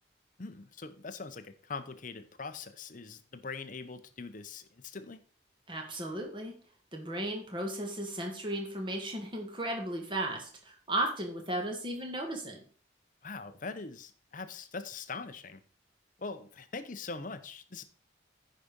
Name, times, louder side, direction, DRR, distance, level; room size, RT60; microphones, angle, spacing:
voice 1, 0.4-5.2 13.2-15.6 16.2-17.8, left 4 dB, 40° left, 11 dB, 0.7 m, -42 dB
voice 2, 5.7-6.6 6.9-12.6, right 1 dB, 25° right, 2 dB, 1.8 m, -35 dB
9.8 x 5.1 x 5.2 m, 0.42 s
head